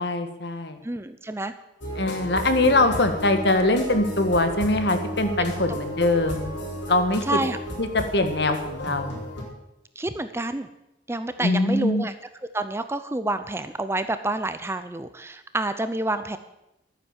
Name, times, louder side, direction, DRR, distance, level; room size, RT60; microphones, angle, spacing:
voice 1, 0.0-0.8 2.0-6.5 6.9-7.4 7.8-9.2 11.4-12.1, left 2 dB, 60° left, 8 dB, 1.5 m, -22 dB
voice 2, 0.8-1.5 5.4-5.8 7.3-7.6 10.0-10.7 11.1-12.1 12.5-16.4, right 2 dB, 15° right, 11 dB, 0.5 m, -28 dB
sound 1, 1.8-9.4, right 1 dB, 75° left, 4.3 m, -33 dB
13.0 x 9.5 x 7.3 m, 0.89 s
head